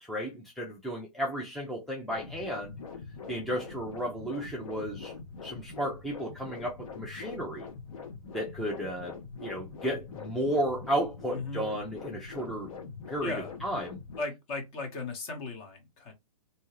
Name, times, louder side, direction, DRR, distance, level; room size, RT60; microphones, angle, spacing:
voice 1, 0.0-2.8 3.3-5.1 5.4-7.7 8.3-12.7 13.1-13.3 13.6-14.0, equal, ahead, 0.5 m, -33 dB
sound 1, 2.1-14.2, left 5 dB, 65° left, 1.0 m, -43 dB
voice 2, 11.3-11.7 13.2-13.5 14.2-16.1, left 3 dB, 30° left, 1.0 m, -36 dB
2.7 x 2.2 x 3.1 m
hypercardioid pair, 130°, 19 cm